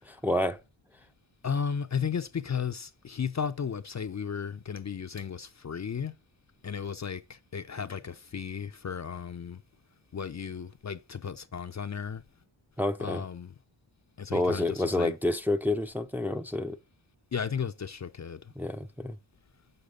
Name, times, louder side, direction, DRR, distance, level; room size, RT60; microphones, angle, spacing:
voice 1, 0.1-0.6 12.8-13.2 14.3-16.8 18.6-19.2, left 1 dB, 5° right, 0.6 m, -29 dB
voice 2, 1.4-6.1 6.6-9.6 10.1-12.2 13.0-13.5 14.2-15.1 17.3-18.4, left 6 dB, 35° left, 0.6 m, -34 dB
8.0 x 6.7 x 3.7 m
cardioid pair, 65°, 46 cm